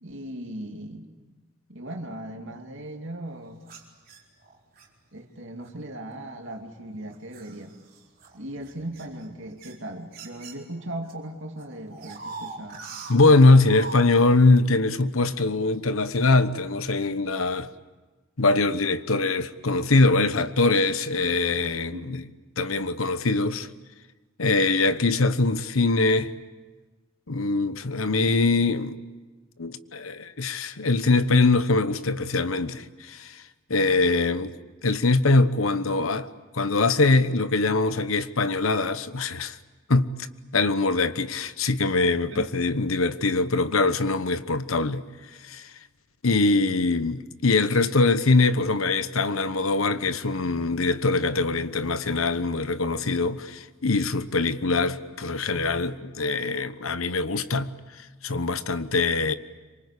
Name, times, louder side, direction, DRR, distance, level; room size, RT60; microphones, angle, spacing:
voice 1, 0.0-1.1 1.7-3.6 5.1-7.7 8.3-12.8 21.9-22.0 22.6-22.7 42.3-42.5, right 1 dB, 65° right, 2.6 m, -38 dB
sound 1, 3.6-4.9 5.6-5.9 6.5-11.1 11.4-14.0, right 4 dB, 45° right, 4.5 m, -42 dB
voice 2, 13.1-17.7 18.4-22.2 22.6-23.7 24.4-26.3 27.3-29.0 29.6-33.4 33.7-34.5 34.8-36.3 36.5-39.6 39.9-40.3 40.5-45.0 45.4-45.7 46.2-57.7 58.2-59.3, left 3 dB, 90° left, 1.1 m, -22 dB
26.5 x 24.5 x 8.4 m
head